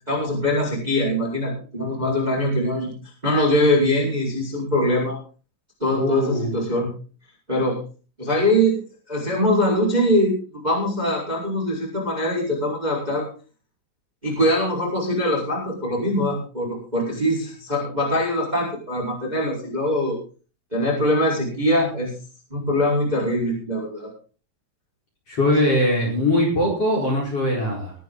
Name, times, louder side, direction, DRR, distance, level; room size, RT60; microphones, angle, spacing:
voice 1, 0.1-2.9 3.2-5.2 5.8-6.9 7.5-7.8 8.2-13.3 14.2-20.2 20.7-22.1 22.5-24.1, left 1 dB, 10° right, -3 dB, 4.5 m, -22 dB
voice 2, 5.9-6.6 25.3-27.9, left 1 dB, 30° left, -3 dB, 4.9 m, -21 dB
22.0 x 9.4 x 3.9 m, 0.37 s
omnidirectional pair, 5.8 m